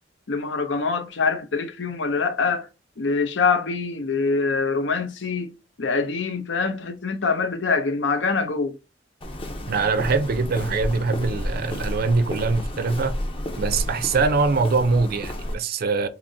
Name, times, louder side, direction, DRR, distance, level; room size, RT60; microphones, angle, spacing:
voice 1, 0.3-2.7 3.0-5.5 5.8-8.8, left 4 dB, 80° left, 0.7 m, -24 dB
Walk footsteps, 9.2-15.5, equal, 30° left, 0.6 m, -31 dB
voice 2, 9.7-13.2 13.6-16.1, right 4 dB, 55° right, 0.5 m, -23 dB
5.8 x 2.1 x 2.6 m
head